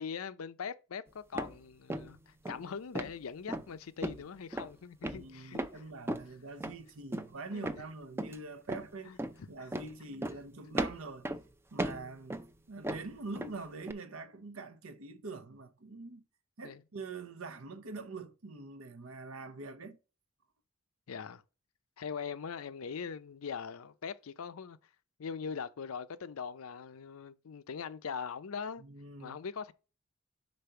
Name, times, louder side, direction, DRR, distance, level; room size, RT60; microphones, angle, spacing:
voice 1, 0.0-5.8 7.5-7.6 9.0-9.7 16.6-16.8 21.1-21.4 22.0-24.8 25.2-28.8 29.2-29.7, left 6 dB, 90° left, 0.5 m, -41 dB
sound 1, 1.3-1.6 1.9-2.2 2.4-2.6 2.9-3.1 3.5-3.7 4.0-4.2 4.5-4.7 5.0-5.7 6.1-6.3 6.6-6.7 7.1-7.3 7.6-7.8 8.2-8.4 8.7-8.9 9.2-9.3 9.7-9.9 10.2-10.4 10.7-11.4 11.8-12.5 12.8-13.6 13.9-14.0, right 1 dB, 10° right, 0.4 m, -36 dB
voice 2, 5.1-9.1 9.5-11.3 11.7-12.4 12.7-16.2 16.6-20.0 28.8-29.4, right 3 dB, 75° right, 0.8 m, -44 dB
5.2 x 4.0 x 5.6 m
head